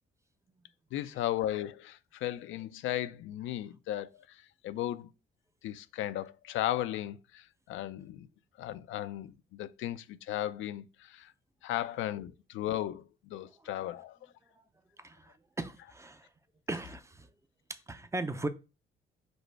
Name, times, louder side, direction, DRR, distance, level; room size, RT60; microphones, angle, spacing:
voice 1, 0.9-4.4 4.6-5.1 5.6-8.3 8.6-11.3 11.6-14.2, left 13 dB, 80° left, 0.4 m, -36 dB
voice 2, 15.0-16.3 16.7-17.3 17.7-18.5, right 2 dB, 15° right, 0.5 m, -38 dB
5.1 x 2.0 x 4.5 m
cardioid pair, 90°, 20 cm